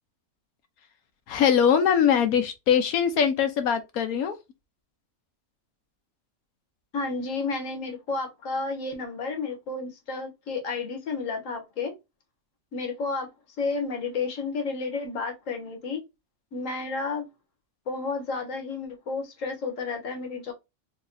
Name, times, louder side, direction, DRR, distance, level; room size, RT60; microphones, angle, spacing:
voice 1, 1.3-4.4, left 8 dB, 85° left, 1.2 m, -22 dB
voice 2, 6.9-11.9 12.7-13.3 13.6-16.0 16.5-17.3 17.9-20.5, left 4 dB, 65° left, 1.3 m, -31 dB
4.3 x 2.8 x 2.6 m
omnidirectional pair, 1.5 m